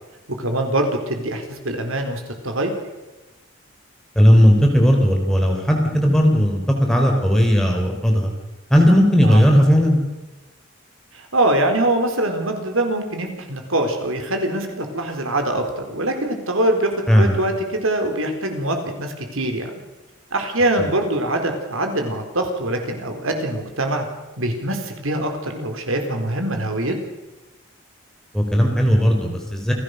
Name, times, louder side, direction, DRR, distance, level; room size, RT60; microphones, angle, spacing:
voice 1, 0.3-2.7 9.2-9.4 11.1-19.7 20.3-24.1 24.4-27.0, right 1 dB, 80° right, 5 dB, 4.2 m, -23 dB
voice 2, 4.2-8.3 8.7-10.0 17.1-17.3 28.3-29.7, equal, ahead, 1 dB, 3.8 m, -16 dB
28.5 x 17.0 x 6.6 m, 1.1 s
head